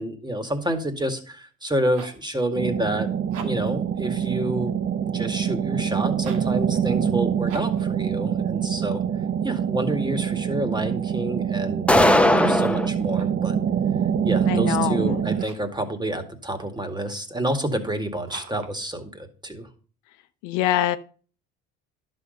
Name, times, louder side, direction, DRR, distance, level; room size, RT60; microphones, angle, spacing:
voice 1, 0.0-3.1 3.4-4.8 5.1-9.0 9.4-13.5 14.2-19.7, right 1 dB, 15° right, 8 dB, 2.2 m, -28 dB
sound 1, 1.6-2.3 3.2-3.8 6.1-6.6 7.4-7.9 12.9-13.5 15.3-15.8 18.2-18.8, right 5 dB, 85° right, 2.1 m, -42 dB
sound 2, 2.5-15.5, right 8 dB, 40° right, 0.8 m, -25 dB
sound 3, 11.9-12.9, left 1 dB, 5° left, 1.1 m, -17 dB
voice 2, 14.4-15.2 20.4-21.0, left 13 dB, 85° left, 11 dB, 0.8 m, -24 dB
11.0 x 6.3 x 5.3 m, 0.39 s
supercardioid pair, 70°, 31 cm